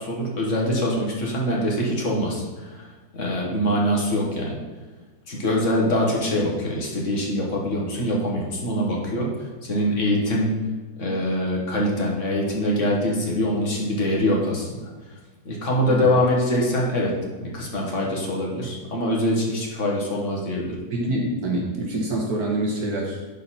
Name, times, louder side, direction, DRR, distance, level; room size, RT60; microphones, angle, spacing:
voice 1, 0.0-2.9 3.1-4.6 5.3-10.5 11.0-14.8 15.5-20.8, equal, 50° left, -2 dB, 1.9 m, -24 dB
voice 2, 20.9-23.3, right 1 dB, 70° right, -1 dB, 1.6 m, -26 dB
12.0 x 4.1 x 4.2 m, 1.3 s
omnidirectional pair, 1.7 m